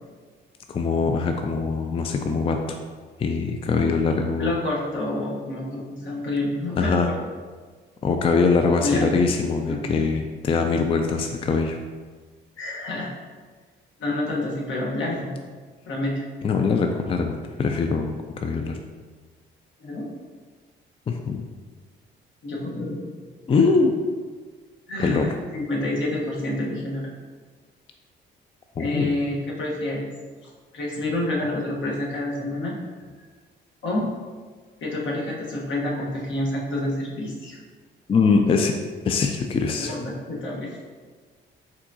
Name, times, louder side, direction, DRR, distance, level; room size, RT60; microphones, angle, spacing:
voice 1, 0.7-2.8 3.2-4.5 6.8-7.1 8.0-11.8 16.4-18.8 21.1-21.4 23.5-23.9 25.0-25.3 28.8-29.1 38.1-38.7 39.0-39.9, left 4 dB, 30° left, 4 dB, 0.3 m, -22 dB
voice 2, 4.4-7.1 8.8-9.1 9.7-9.8 12.6-13.1 14.0-15.5 15.9-16.1 19.8-20.1 22.4-23.1 24.9-27.1 28.8-30.1 30.7-32.8 33.8-34.0 34.8-37.6 39.8-40.8, left 1 dB, 75° left, -4 dB, 1.2 m, -28 dB
4.9 x 3.6 x 2.7 m, 1.5 s
cardioid pair, 90°, 20 cm